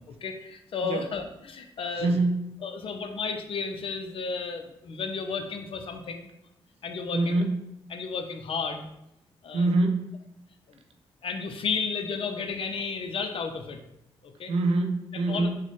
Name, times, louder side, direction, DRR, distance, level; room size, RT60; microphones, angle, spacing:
voice 1, 0.0-2.1 2.6-6.3 6.8-7.4 7.9-8.9 9.4-9.7 10.7-10.8 11.2-13.8 14.2-14.5 15.1-15.6, left 5 dB, 60° left, 6 dB, 0.5 m, -33 dB
voice 2, 2.0-2.5 7.1-7.6 9.5-10.1 14.5-15.6, right 2 dB, 75° right, 5 dB, 0.4 m, -25 dB
4.1 x 2.1 x 3.0 m, 0.82 s
cardioid pair, 60°, 10 cm